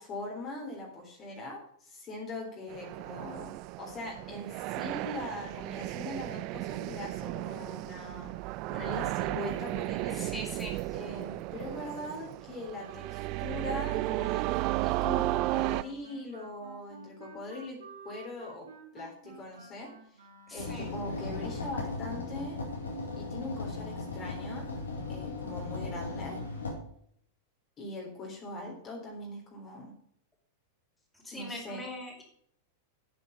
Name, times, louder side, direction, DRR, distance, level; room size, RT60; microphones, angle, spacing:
voice 1, 0.0-8.3 8.7-10.2 10.9-14.5 14.8-17.8 18.0-18.7 18.9-20.2 20.5-22.6 23.2-24.7 25.1-26.4 27.8-29.9 31.3-31.8, left 2 dB, 30° left, -1 dB, 3.9 m, -41 dB
sound 1, 2.7-15.8, right 19 dB, 45° right, 0.5 m, -34 dB
voice 2, 10.1-11.0 20.5-20.9 31.2-32.2, left 1 dB, 10° left, -1 dB, 4.6 m, -41 dB
Wind instrument woodwind instrument, 15.5-21.1, right 4 dB, 65° right, 3.7 m, -52 dB
sound 2, 20.6-26.7, left 3 dB, 75° left, 4.6 m, -37 dB
9.8 x 9.7 x 5.4 m, 0.66 s
figure-of-eight pair, 95°, 0 cm